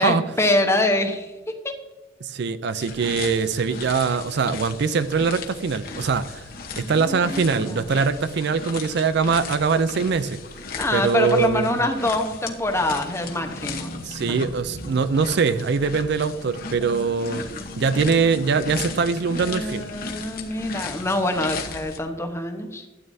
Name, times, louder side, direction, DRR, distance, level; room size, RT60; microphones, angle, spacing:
voice 1, 0.0-1.3 1.6-1.7 6.7-8.0 10.7-13.9 14.2-14.4 16.8-17.1 17.5-17.6 19.4-22.9, left 1 dB, 15° left, 5 dB, 0.9 m, -25 dB
voice 2, 2.2-6.5 6.8-10.4 10.9-11.8 14.0-17.4 17.8-19.9, right 5 dB, 55° right, 13 dB, 0.4 m, -22 dB
sound 1, 2.8-22.0, left 4 dB, 45° left, 1.1 m, -37 dB
sound 2, 13.0-21.9, equal, 80° left, 1.1 m, -42 dB
12.5 x 8.8 x 2.7 m, 1.2 s
head